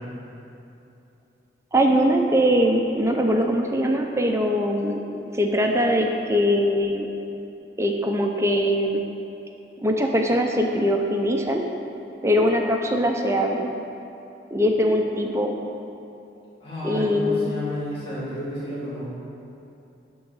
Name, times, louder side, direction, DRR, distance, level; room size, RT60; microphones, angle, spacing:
voice 1, 1.7-5.0 5.3-7.1 7.8-9.0 9.8-11.6 12.2-13.7 14.5-15.5 16.8-17.5, equal, 15° right, 2 dB, 0.6 m, -21 dB
voice 2, 16.6-19.0, left 1 dB, 30° left, -9 dB, 2.1 m, -31 dB
11.5 x 3.9 x 7.1 m, 2.8 s
head